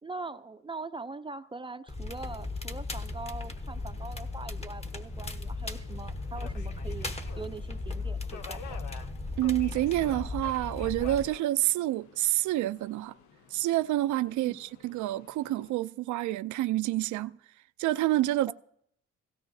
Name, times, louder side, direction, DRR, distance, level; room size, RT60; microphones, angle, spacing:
voice 1, 0.0-8.8 14.4-14.6 18.5-18.6, right 3 dB, 15° right, 0.5 m, -42 dB
Crackle, 1.9-11.3, left 3 dB, 20° left, 1.0 m, -37 dB
Subway metro underground, 2.1-15.7, left 5 dB, 75° left, 0.9 m, -51 dB
voice 2, 9.4-13.1 13.5-17.3 17.8-18.5, right 15 dB, 75° right, 0.4 m, -28 dB
17.0 x 16.5 x 2.7 m
cardioid pair, 90°, 30 cm